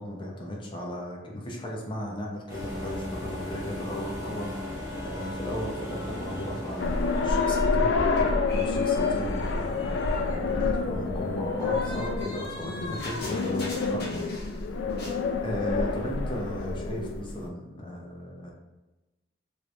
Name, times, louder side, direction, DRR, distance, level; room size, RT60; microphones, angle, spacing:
voice 1, 0.0-14.6 15.4-18.5, equal, 30° left, -1 dB, 0.7 m, -36 dB
sound 1, 2.5-7.7, left 1 dB, 20° right, 0.9 m, -37 dB
sound 2, 4.0-7.7 7.9-14.6 14.9-15.2, left 1 dB, 60° left, 1.0 m, -40 dB
sound 3, 6.8-17.4, left 4 dB, 85° left, 0.3 m, -28 dB
3.1 x 2.6 x 3.1 m, 1.1 s
head